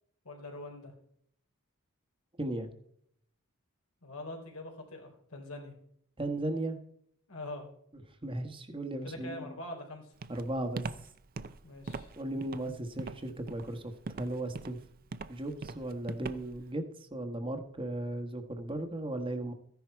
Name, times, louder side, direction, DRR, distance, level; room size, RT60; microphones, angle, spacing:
voice 1, 0.3-0.9 4.0-5.7 7.3-7.7 9.0-10.1 11.6-12.1, left 1 dB, 75° left, 2 dB, 3.4 m, -43 dB
voice 2, 2.4-2.7 6.2-6.8 8.2-9.6 10.3-10.9 12.2-14.8 15.3-19.5, right 1 dB, 25° right, 6 dB, 1.2 m, -36 dB
Walk footsteps, 10.2-16.7, right 3 dB, 45° right, 0.6 m, -41 dB
14.5 x 10.5 x 4.5 m, 0.66 s
head